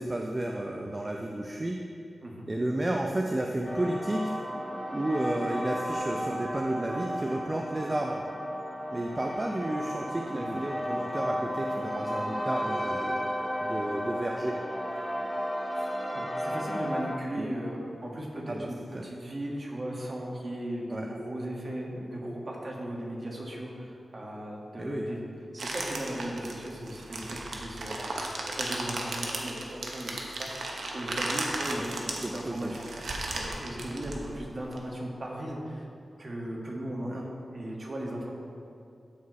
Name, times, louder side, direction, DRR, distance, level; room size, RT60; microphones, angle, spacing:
voice 1, 0.0-1.8 2.5-4.4 4.9-8.2 8.9-13.2 13.6-14.6 17.4-17.5 18.5-18.7 18.9-19.0 20.9-21.1 24.8-25.0 32.2-32.7 37.0-37.2, right 1 dB, 30° right, 1 dB, 0.5 m, -32 dB
sound 1, 3.6-17.2, equal, 5° left, 1.2 m, -33 dB
voice 2, 16.1-25.2 25.5-30.6 30.9-32.9 33.4-35.9 36.2-38.3, right 1 dB, 45° right, -2 dB, 1.7 m, -37 dB
sound 2, 25.6-34.8, right 2 dB, 80° right, 0.9 m, -35 dB
14.0 x 4.7 x 3.1 m, 2.6 s
cardioid pair, 55°, 0 cm